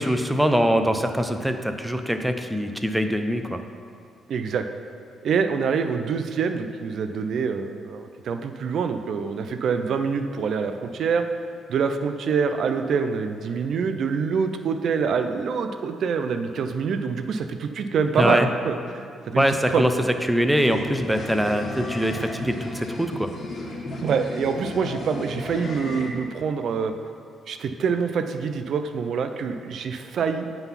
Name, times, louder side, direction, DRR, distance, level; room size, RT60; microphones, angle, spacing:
voice 1, 0.0-3.6 18.2-18.5 19.4-19.9 20.3-23.3, equal, 5° right, 7 dB, 0.5 m, -23 dB
voice 2, 4.3-4.7 5.2-11.3 11.7-19.4 19.7-19.8 24.0-26.9 27.5-30.5, right 6 dB, 65° right, 8 dB, 0.4 m, -25 dB
sound 1, 20.6-26.1, left 2 dB, 40° left, 1.2 m, -35 dB
8.9 x 3.9 x 5.7 m, 2.2 s
cardioid pair, 90°, 0 cm